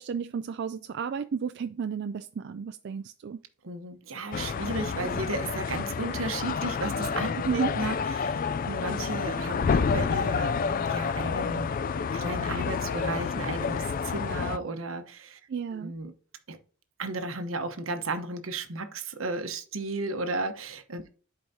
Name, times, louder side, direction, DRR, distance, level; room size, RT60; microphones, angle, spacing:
voice 1, 0.0-3.4 7.4-7.7 15.5-15.9, right 6 dB, 55° right, 0.3 m, -32 dB
voice 2, 3.6-8.4 8.7-11.8 12.1-15.4 15.7-16.1 16.5-16.6 17.0-21.0, right 2 dB, 80° right, 1.0 m, -34 dB
sound 1, 4.3-14.6, left 5 dB, 45° left, 0.3 m, -29 dB
11.5 x 4.7 x 2.8 m
head